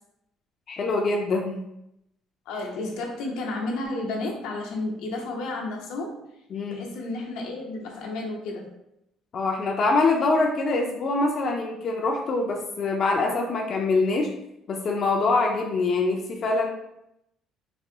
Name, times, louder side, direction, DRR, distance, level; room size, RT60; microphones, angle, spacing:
voice 1, 0.7-1.6 6.5-6.8 9.3-14.3 14.7-16.7, left 3 dB, 40° left, 1 dB, 0.4 m, -24 dB
voice 2, 2.5-6.1 6.7-8.7, left 2 dB, 90° left, 0 dB, 0.7 m, -32 dB
4.1 x 2.6 x 2.7 m, 0.83 s
cardioid pair, 135°, 0 cm